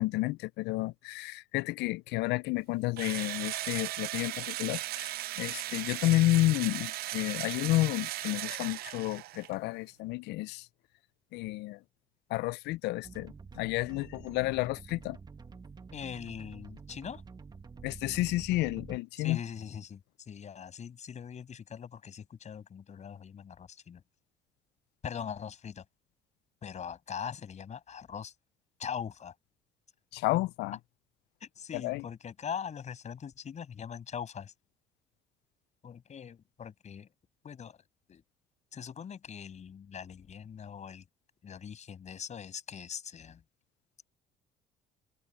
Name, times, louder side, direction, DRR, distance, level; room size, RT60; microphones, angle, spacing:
voice 1, 0.0-10.7 11.3-11.8 12.3-15.2 17.8-19.4 30.1-30.8 31.7-32.0, left 19 dB, 85° left, 0.4 m, -31 dB
Engine / Drill, 3.0-9.5, right 15 dB, 65° right, 0.5 m, -37 dB
sound 1, 13.0-19.0, right 5 dB, 25° right, 1.5 m, -48 dB
voice 2, 15.9-17.2 19.2-24.0 25.0-25.8 26.6-28.3 28.8-29.3 31.4-34.5 35.8-37.1 37.4-37.8 38.1-38.2 38.7-41.0 41.4-43.4, left 7 dB, 45° left, 6.4 m, -42 dB
cardioid pair, 110°, 17 cm